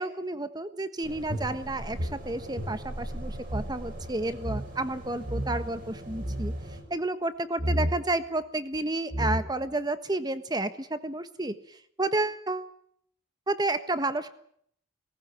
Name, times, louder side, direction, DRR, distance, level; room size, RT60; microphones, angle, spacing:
voice 1, 0.0-6.5 6.9-12.7 13.5-14.3, right 2 dB, 20° right, 11 dB, 1.4 m, -31 dB
sound 1, 1.0-6.8, right 1 dB, 50° right, 6.1 m, -41 dB
sound 2, 1.3-3.7 4.0-4.1 4.4-4.7 5.2-5.7 6.1-6.6 7.6-8.0 8.7-8.8 9.1-9.7, equal, 85° right, 6.8 m, -31 dB
19.0 x 18.0 x 8.9 m, 0.65 s
head